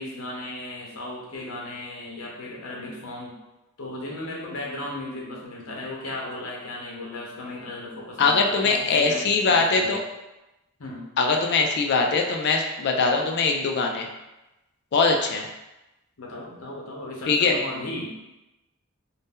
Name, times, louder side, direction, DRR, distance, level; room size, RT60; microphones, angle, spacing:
voice 1, 0.0-3.4 3.8-10.0 10.8-11.1 16.2-18.2, left 1 dB, 70° left, -3 dB, 0.8 m, -36 dB
voice 2, 8.2-10.0 11.2-14.1 14.9-15.5 17.3-17.5, left 4 dB, 50° left, 2 dB, 0.4 m, -22 dB
2.6 x 2.1 x 3.5 m, 0.98 s
head